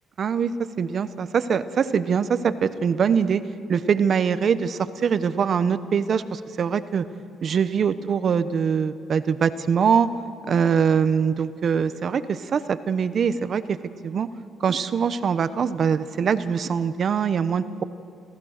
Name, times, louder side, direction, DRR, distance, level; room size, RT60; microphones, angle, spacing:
voice 1, 0.2-0.5 0.8-3.4 3.7-7.0 7.4-10.1 10.5-13.8 14.0-14.3 14.6-17.8, right 6 dB, 55° right, 13 dB, 0.9 m, -23 dB
27.5 x 15.0 x 6.6 m, 2.4 s
cardioid pair, 90°, 0 cm